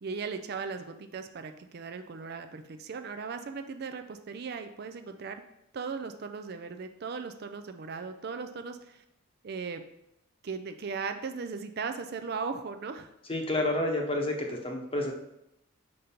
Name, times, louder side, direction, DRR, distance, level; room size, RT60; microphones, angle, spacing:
voice 1, 0.0-5.4 5.7-9.0 9.4-9.8 10.4-13.1, right 5 dB, 50° right, 8 dB, 0.4 m, -37 dB
voice 2, 13.3-15.1, left 1 dB, 25° left, 2 dB, 0.9 m, -29 dB
5.3 x 5.1 x 4.3 m, 0.82 s
head